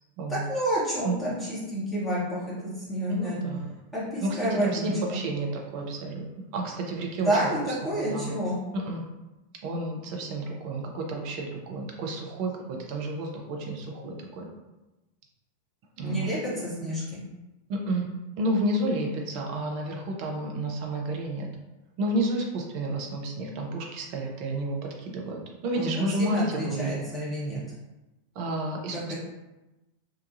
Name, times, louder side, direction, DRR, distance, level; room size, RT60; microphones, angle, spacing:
voice 1, 0.3-3.4 3.9-5.2 7.2-8.6 16.0-17.2 25.7-27.6 28.9-29.1, equal, 5° left, -10 dB, 1.0 m, -29 dB
voice 2, 3.1-3.7 4.2-6.3 6.5-7.3 7.9-8.3 8.7-9.0 9.6-14.5 16.0-16.3 17.7-18.1 18.4-21.5 22.0-27.0 28.4-29.1, right 1 dB, 45° right, 1 dB, 0.5 m, -31 dB
2.8 x 2.3 x 2.5 m, 1.0 s
figure-of-eight pair, 90°, 0 cm